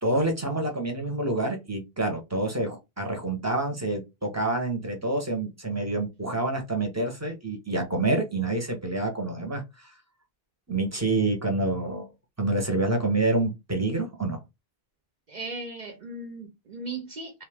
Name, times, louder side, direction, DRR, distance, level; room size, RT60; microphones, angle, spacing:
voice 1, 0.0-9.9 10.7-12.1 12.4-14.4, right 2 dB, 20° right, 0.7 m, -27 dB
voice 2, 15.3-17.4, right 2 dB, 55° right, 0.7 m, -37 dB
2.7 x 2.4 x 3.3 m
omnidirectional pair, 1.0 m